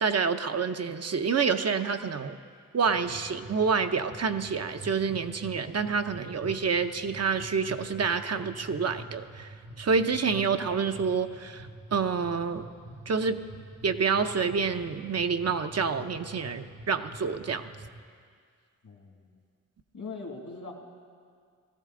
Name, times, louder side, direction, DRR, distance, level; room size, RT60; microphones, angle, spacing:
voice 1, 0.0-2.4 2.7-9.5 9.8-12.6 13.1-13.4 13.8-17.7, right 5 dB, 50° right, 8 dB, 0.7 m, -28 dB
sound 1, 2.9-18.0, right 1 dB, 70° right, 1.3 m, -47 dB
voice 2, 18.8-19.4 19.9-20.7, left 4 dB, 75° left, 2 dB, 2.1 m, -41 dB
18.0 x 14.5 x 3.8 m, 2.1 s
cardioid pair, 60°, 32 cm